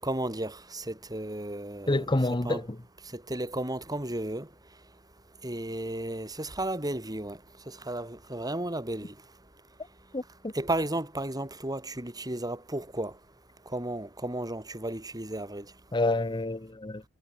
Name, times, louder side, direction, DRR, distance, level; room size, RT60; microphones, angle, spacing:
voice 1, 0.0-2.7 3.1-4.5 5.4-7.4 7.7-9.1 10.5-13.1 13.7-15.7, right 1 dB, 20° right, 7.9 m, -34 dB
voice 2, 1.9-2.6 10.1-10.5 15.9-17.0, left 2 dB, 20° left, 1.0 m, -28 dB
head